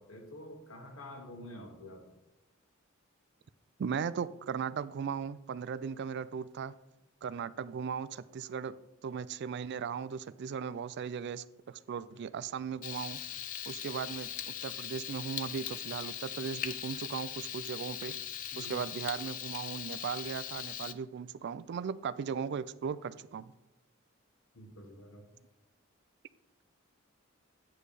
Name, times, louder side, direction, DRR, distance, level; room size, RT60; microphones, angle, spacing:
voice 1, 0.0-2.0 18.5-18.8 24.5-25.3, left 1 dB, 80° left, 1.5 m, -48 dB
voice 2, 3.8-6.7 7.2-8.7 9.0-13.2 13.7-18.2 18.6-23.5, right 6 dB, 55° right, 0.3 m, -37 dB
Frying (food), 12.8-20.9, left 10 dB, 40° left, 0.4 m, -40 dB
9.4 x 3.3 x 6.7 m
head